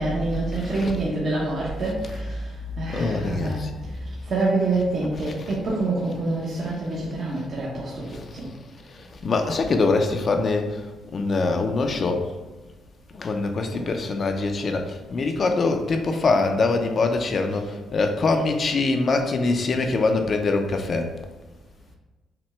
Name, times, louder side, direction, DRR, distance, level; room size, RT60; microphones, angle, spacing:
voice 1, 0.0-2.5 2.8-3.6 4.2-8.5, right 2 dB, 50° right, -5 dB, 0.9 m, -26 dB
voice 2, 0.5-0.9 1.8-2.2 2.9-3.7 5.1-5.6 6.6-6.7 8.1-8.4 8.9-12.3 13.1-21.1, left 3 dB, 45° left, 5 dB, 0.5 m, -24 dB
5.8 x 2.2 x 3.2 m, 1.2 s
cardioid pair, 90°, 0 cm